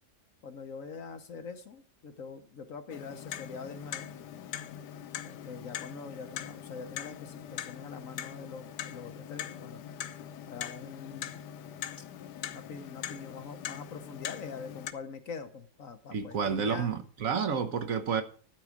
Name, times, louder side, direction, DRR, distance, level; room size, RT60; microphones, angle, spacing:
voice 1, 0.4-4.1 5.2-9.8 10.5-11.4 12.5-16.9, left 5 dB, 55° left, 1.3 m, -44 dB
Clock, 2.9-14.9, left 10 dB, 80° left, 1.3 m, -42 dB
voice 2, 16.1-18.2, right 6 dB, 60° right, 1.4 m, -30 dB
12.0 x 4.8 x 7.4 m
omnidirectional pair, 1.7 m